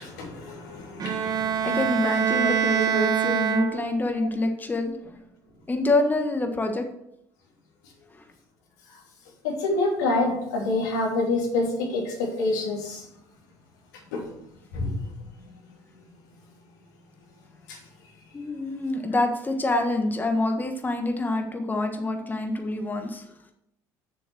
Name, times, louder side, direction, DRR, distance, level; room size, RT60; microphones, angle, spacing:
voice 1, 0.0-1.8 2.4-2.5 9.4-13.0 14.1-14.2 14.7-14.9 17.7-17.8, left 2 dB, 85° left, -1 dB, 2.9 m, -27 dB
Bowed string instrument, 1.0-4.2, right 8 dB, 45° right, 1.2 m, -25 dB
voice 2, 1.6-4.9 5.7-6.8 18.3-23.2, left 2 dB, 20° left, 4 dB, 1.4 m, -26 dB
7.1 x 6.9 x 6.1 m, 0.80 s
hypercardioid pair, 75°, 9 cm